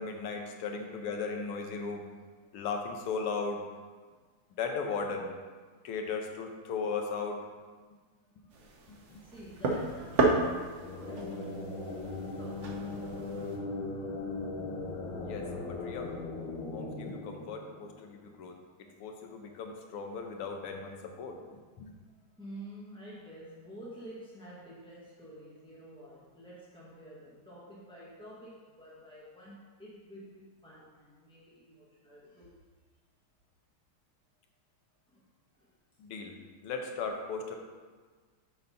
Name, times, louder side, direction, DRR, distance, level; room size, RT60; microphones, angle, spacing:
voice 1, 0.0-2.0 2.5-3.6 4.6-5.3 5.8-7.4 8.9-9.0 13.8-13.9 15.2-16.1 16.7-21.4 21.8-21.9 36.0-36.4 36.6-37.6, left 4 dB, 85° left, 3 dB, 1.7 m, -37 dB
voice 2, 0.7-1.3 2.4-2.7 8.6-8.9 9.2-11.7 12.4-13.3 16.5-16.8 19.2-19.5 20.8-20.9 22.4-32.5 35.1-35.3 35.6-35.7, right 1 dB, 5° left, -8 dB, 0.5 m, -50 dB
sound 1, 8.5-13.6, right 3 dB, 90° right, 0.6 m, -33 dB
sound 2, 10.6-18.2, left 3 dB, 70° left, 1.8 m, -39 dB
6.7 x 4.0 x 5.5 m, 1.5 s
omnidirectional pair, 2.4 m